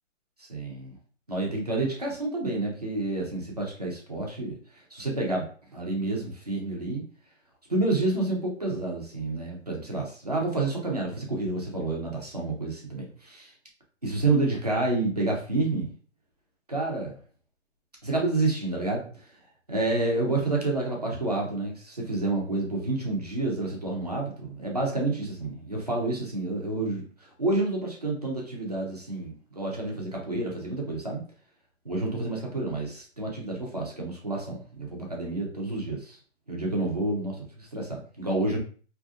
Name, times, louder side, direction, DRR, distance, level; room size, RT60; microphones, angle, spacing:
voice 1, 0.4-1.0 1.3-4.6 4.9-5.5 5.7-7.0 7.7-13.5 14.0-15.9 16.7-17.2 18.0-19.2 19.7-27.0 27.4-31.2 31.9-36.2 36.5-38.6, right 2 dB, 35° right, -2 dB, 0.4 m, -29 dB
2.5 x 2.4 x 2.3 m, 0.42 s
hypercardioid pair, 180°, 37 cm